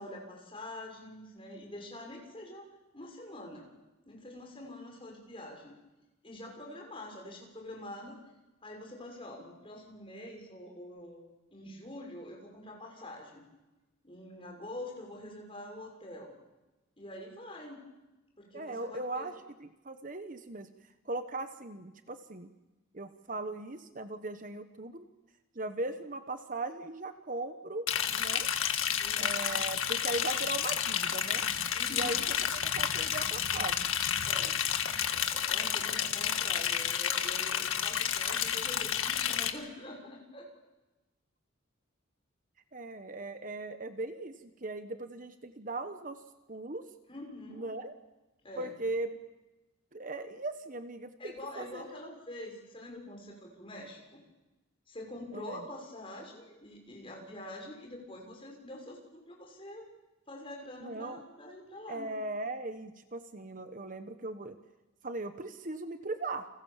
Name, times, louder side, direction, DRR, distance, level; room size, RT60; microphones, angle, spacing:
voice 1, 0.0-2.7 2.9-3.7 4.1-5.7 6.2-8.2 8.6-11.2 11.5-13.5 14.0-16.4 17.0-17.9 18.4-19.3 29.0-29.4 31.7-32.3 34.2-34.6 35.1-40.5 47.1-47.7 48.4-48.8 51.2-54.2 54.9-59.9 60.3-62.1, left 1 dB, 25° left, 1 dB, 6.1 m, -45 dB
voice 2, 18.5-19.3 19.6-20.7 21.0-22.5 22.9-25.0 25.5-28.5 29.2-31.5 31.9-32.2 32.5-33.9 42.7-46.2 46.5-46.8 47.5-47.9 48.6-49.2 49.9-51.8 55.3-55.6 60.8-61.2 61.9-64.6 65.0-66.5, right 2 dB, 40° right, 9 dB, 1.2 m, -38 dB
Liquid, 27.9-39.5, left 9 dB, 85° left, 1.8 m, -31 dB
30.0 x 24.5 x 7.4 m, 1.1 s
head